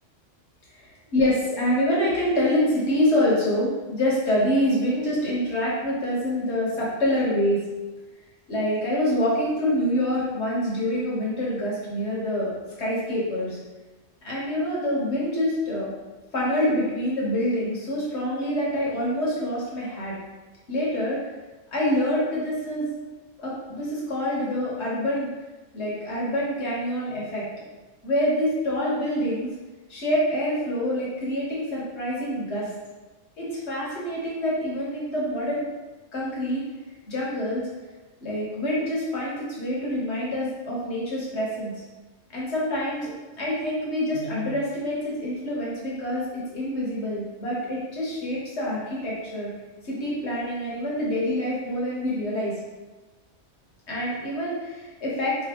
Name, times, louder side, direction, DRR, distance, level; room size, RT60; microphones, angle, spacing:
voice 1, 1.1-7.6 8.5-12.5 12.8-13.6 14.2-15.9 16.3-20.2 20.7-21.2 21.7-22.9 23.4-25.3 25.7-27.4 28.0-29.5 29.9-32.7 33.4-35.6 36.1-36.6 37.1-37.6 38.2-41.7 42.3-49.5 49.8-52.5 53.9-55.4, left 1 dB, 55° left, -6 dB, 1.5 m, -26 dB
4.6 x 2.9 x 3.0 m, 1.2 s
omnidirectional pair, 1.3 m